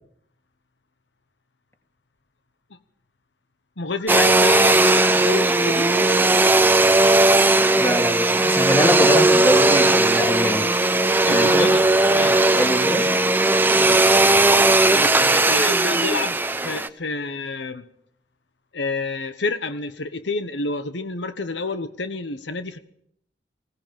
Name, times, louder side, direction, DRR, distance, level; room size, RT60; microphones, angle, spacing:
voice 1, 3.8-5.9 11.2-13.2 13.7-14.0 14.9-17.9 18.7-22.8, left 3 dB, 85° left, 10 dB, 1.2 m, -29 dB
Domestic sounds home sounds, 4.1-16.9, right 2 dB, 10° right, 0.7 m, -17 dB
voice 2, 7.8-10.7 11.3-11.7 12.5-13.1, left 1 dB, 15° left, 3 dB, 2.8 m, -23 dB
20.5 x 17.0 x 7.6 m, 0.70 s
head